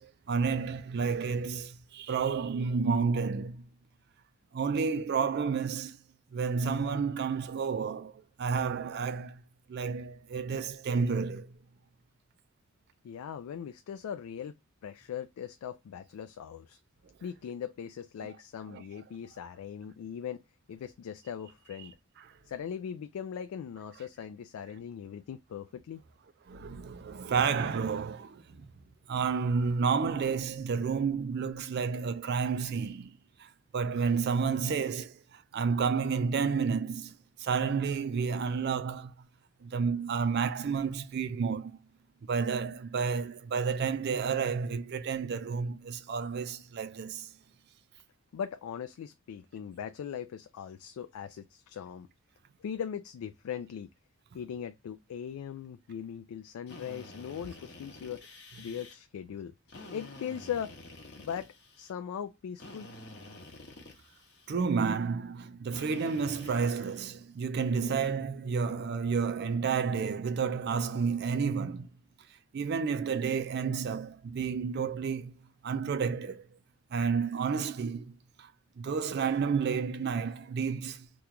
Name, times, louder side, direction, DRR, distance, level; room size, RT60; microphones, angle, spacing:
voice 1, 0.0-3.7 4.5-6.0 6.3-8.1 8.4-9.4 9.7-11.5 18.7-18.8 22.2-22.3 26.5-28.4 29.1-37.1 37.4-39.1 39.6-41.8 42.3-47.3 64.5-71.9 72.5-75.3 75.6-76.4 76.9-78.5 78.8-81.1, right 5 dB, 50° right, 0.3 m, -31 dB
voice 2, 13.0-14.5 14.8-16.8 17.2-20.4 20.7-22.0 22.5-26.0 48.3-52.1 52.6-53.9 54.3-58.2 58.6-59.5 59.9-60.7 61.2-62.9, left 8 dB, 85° left, 0.3 m, -39 dB
Drill, 56.7-58.9 59.7-61.9 62.6-64.5 65.7-67.1, left 2 dB, 50° left, 0.8 m, -49 dB
3.0 x 2.2 x 3.7 m
head